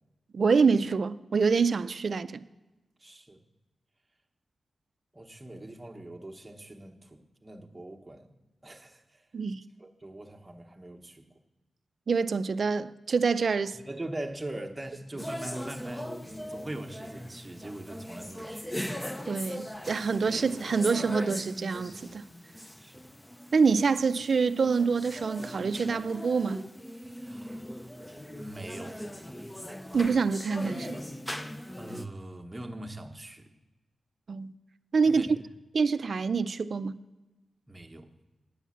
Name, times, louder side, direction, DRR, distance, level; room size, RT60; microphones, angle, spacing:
voice 1, 0.3-2.4 9.3-9.6 12.1-13.8 19.3-22.2 23.5-26.6 29.9-31.0 34.3-34.5 34.9-35.3 35.7-36.9, right 5 dB, 55° right, 0.4 m, -26 dB
voice 2, 3.0-3.4 5.1-8.3 8.6-9.3 9.8-11.3 13.6-16.1 16.5-18.8 22.8-23.1 27.2-27.9 28.2-29.0 31.8-33.5 35.0-35.3 37.7-38.1, right 1 dB, 15° right, 0.9 m, -42 dB
sound 1, 15.2-32.1, equal, 10° left, 0.5 m, -40 dB
10.0 x 7.0 x 8.4 m
wide cardioid pair, 140°, 0 cm